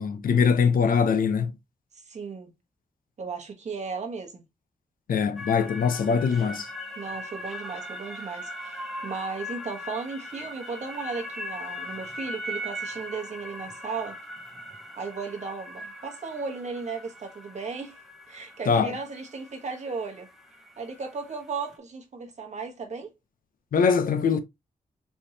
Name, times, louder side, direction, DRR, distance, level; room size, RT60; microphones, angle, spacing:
voice 1, 0.0-1.5 5.1-6.7 18.7-18.9 23.7-24.4, left 6 dB, 80° left, 0.7 m, -22 dB
voice 2, 1.9-2.5 3.2-4.4 7.0-14.2 15.0-18.0 18.3-20.3 20.8-23.1, right 4 dB, 55° right, 1.1 m, -35 dB
sound 1, 5.4-21.8, left 1 dB, ahead, 0.8 m, -40 dB
4.5 x 3.4 x 2.7 m
wide cardioid pair, 160°, 14 cm